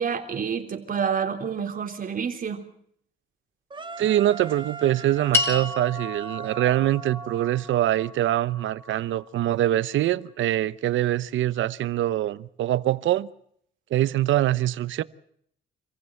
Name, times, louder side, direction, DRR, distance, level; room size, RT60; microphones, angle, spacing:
voice 1, 0.0-2.6, right 6 dB, 45° right, 3.5 m, -28 dB
sound 1, 3.7-7.8, right 5 dB, 25° right, 1.6 m, -39 dB
voice 2, 4.0-13.3 13.9-15.0, right 13 dB, 75° right, 0.9 m, -24 dB
sound 2, 5.3-9.8, left 2 dB, 10° left, 6.5 m, -32 dB
27.0 x 15.5 x 7.8 m
cardioid pair, 90°, 20 cm